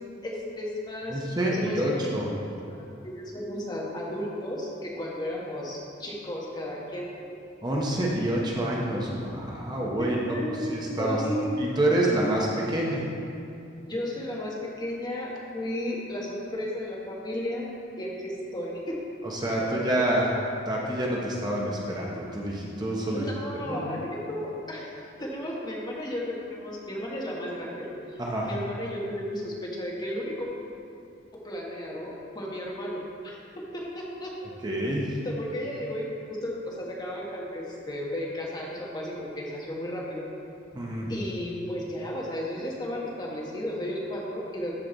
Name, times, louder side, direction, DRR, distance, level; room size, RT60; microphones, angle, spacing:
voice 1, 0.2-1.2 1.5-2.1 2.7-7.1 10.0-11.5 13.9-19.0 19.6-19.7 23.1-24.9 25.2-30.5 31.3-34.3 35.2-40.3 41.1-44.7, left 1 dB, 25° left, -4 dB, 1.4 m, -34 dB
voice 2, 1.1-2.3 7.6-11.2 11.6-13.1 19.2-20.3 20.7-23.3 23.6-23.9 28.2-28.5 34.6-35.2 40.7-41.1, right 1 dB, 25° right, -3 dB, 0.9 m, -27 dB
13.5 x 5.2 x 3.9 m, 2.5 s
head